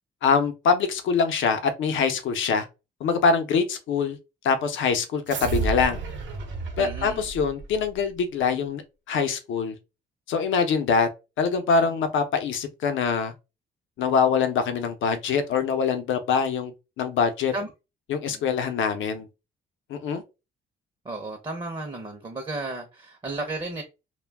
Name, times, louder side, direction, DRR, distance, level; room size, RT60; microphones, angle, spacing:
voice 1, 0.2-2.7 3.0-4.2 4.4-6.0 6.8-8.8 9.1-9.8 10.3-11.1 11.4-13.3 14.0-17.5 18.1-19.3 19.9-20.2, left 5 dB, 75° left, 0.7 m, -24 dB
sound 1, 5.3-8.0, right 4 dB, 70° right, 0.8 m, -31 dB
voice 2, 6.8-7.2 17.5-17.7 18.3-18.4 21.0-23.8, right 2 dB, 25° right, 0.6 m, -33 dB
2.2 x 2.1 x 3.3 m
cardioid pair, 90°, 20 cm